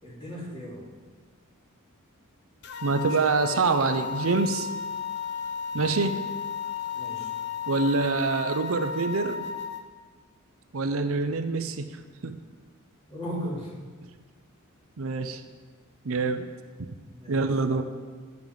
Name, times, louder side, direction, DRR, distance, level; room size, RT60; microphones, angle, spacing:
voice 1, 0.0-0.8 6.9-7.3 13.1-13.7 16.9-17.5, equal, 25° left, -5 dB, 2.9 m, -36 dB
sound 1, 2.6-9.8, left 6 dB, 55° left, 0.8 m, -34 dB
voice 2, 2.8-4.7 5.7-6.2 7.7-9.4 10.7-12.0 12.2-12.3 15.0-15.4 16.1-16.5 16.8-16.9 17.3-17.8, right 4 dB, 70° right, 9 dB, 0.6 m, -25 dB
11.0 x 5.4 x 7.3 m, 1.5 s
head